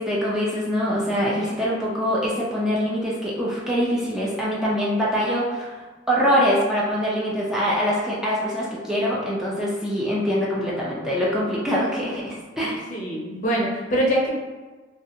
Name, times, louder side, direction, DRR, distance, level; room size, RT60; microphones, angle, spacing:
voice 1, 0.0-12.8, equal, 5° right, -6 dB, 0.4 m, -24 dB
voice 2, 12.6-14.3, equal, 45° left, -3 dB, 0.6 m, -24 dB
2.6 x 2.4 x 2.6 m, 1.3 s
head